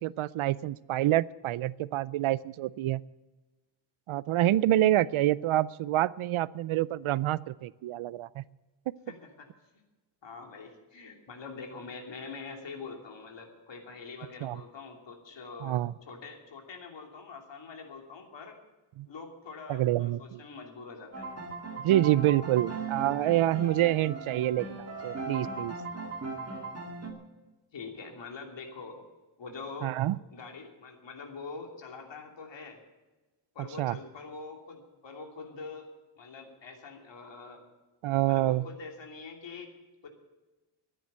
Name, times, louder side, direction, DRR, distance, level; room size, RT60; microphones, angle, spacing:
voice 1, 0.0-3.0 4.1-8.4 14.4-14.6 15.6-15.9 19.0-19.1 19.7-20.4 21.8-25.7 29.8-30.2 33.6-34.0 38.0-38.6, right 14 dB, 90° right, 20 dB, 0.6 m, -27 dB
voice 2, 9.1-9.5 10.2-18.6 19.1-21.3 27.7-29.0 29.4-29.9 30.3-32.8 33.5-35.9 36.2-37.6 38.3-39.7 40.0-40.1, left 4 dB, 65° left, 2 dB, 3.0 m, -44 dB
sound 1, 21.1-27.1, right 3 dB, 30° right, 2.4 m, -38 dB
13.5 x 10.0 x 8.2 m, 1.1 s
wide cardioid pair, 175°, 48 cm